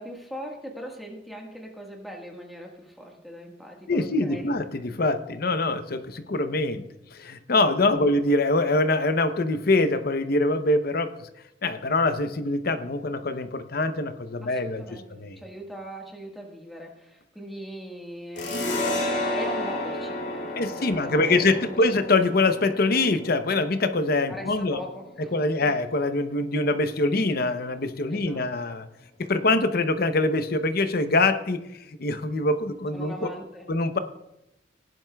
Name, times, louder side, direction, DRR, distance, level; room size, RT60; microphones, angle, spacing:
voice 1, 0.0-4.5 7.9-8.1 14.4-21.6 24.3-25.3 25.6-25.7 28.1-28.4 32.9-33.7, equal, ahead, -1 dB, 1.5 m, -40 dB
voice 2, 3.9-11.3 11.6-14.8 15.2-15.4 20.6-24.8 25.3-28.9 29.2-31.7 32.0-33.3 33.7-34.0, left 2 dB, 55° left, 10 dB, 0.7 m, -24 dB
sound 1, 18.4-25.5, left 1 dB, 70° left, 2.5 m, -32 dB
18.0 x 11.0 x 2.3 m, 0.88 s
head